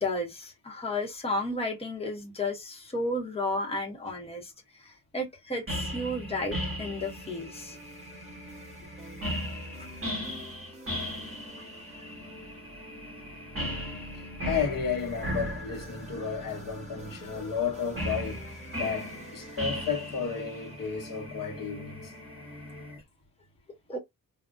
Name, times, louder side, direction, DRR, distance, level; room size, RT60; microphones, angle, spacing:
voice 1, 0.0-4.5 4.8-7.8 9.8-9.9 11.6-11.7 23.9-24.0, left 1 dB, 15° left, 0.8 m, -33 dB
sound 1, 5.7-22.9, equal, 40° right, 1.6 m, -38 dB
sound 2, 7.0-23.0, equal, 20° right, 1.0 m, -49 dB
voice 2, 14.4-18.5 18.8-22.1, left 6 dB, 70° left, 0.8 m, -32 dB
3.5 x 2.1 x 2.5 m
wide cardioid pair, 165°, 35 cm